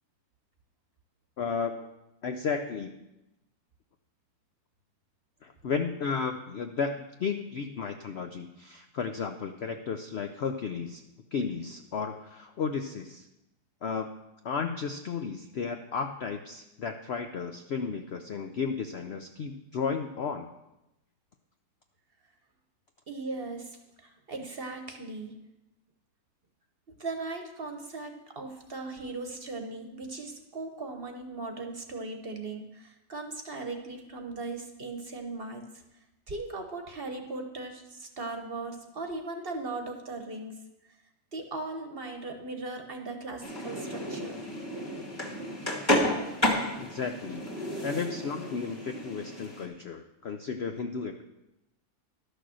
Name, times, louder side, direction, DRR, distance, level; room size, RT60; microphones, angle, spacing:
voice 1, 1.4-1.9 2.2-2.9 5.4-11.0 11.3-13.3 13.8-14.1 14.4-20.5 46.8-47.5 47.8-51.2, left 5 dB, 60° left, 6 dB, 0.6 m, -33 dB
voice 2, 23.1-23.8 24.3-25.3 27.0-35.6 36.3-40.5 41.3-44.4, right 3 dB, 40° right, 4 dB, 1.1 m, -38 dB
sound 1, 43.4-49.7, left 1 dB, 15° left, 2.0 m, -31 dB
12.0 x 6.6 x 6.3 m, 0.94 s
omnidirectional pair, 1.7 m